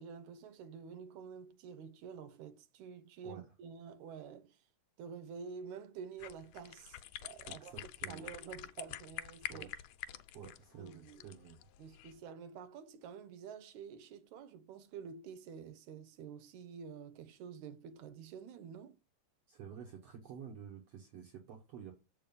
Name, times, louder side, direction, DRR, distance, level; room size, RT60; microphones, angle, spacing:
voice 1, 0.0-4.6 5.0-9.7 10.8-11.2 11.8-19.0, right 6 dB, 75° right, 2.2 m, -49 dB
sound 1, 6.2-12.2, left 13 dB, 80° left, 1.7 m, -47 dB
voice 2, 7.5-8.3 9.5-9.7 10.3-11.6 19.5-21.9, right 8 dB, 60° right, 2.1 m, -50 dB
7.5 x 4.8 x 5.3 m
omnidirectional pair, 3.5 m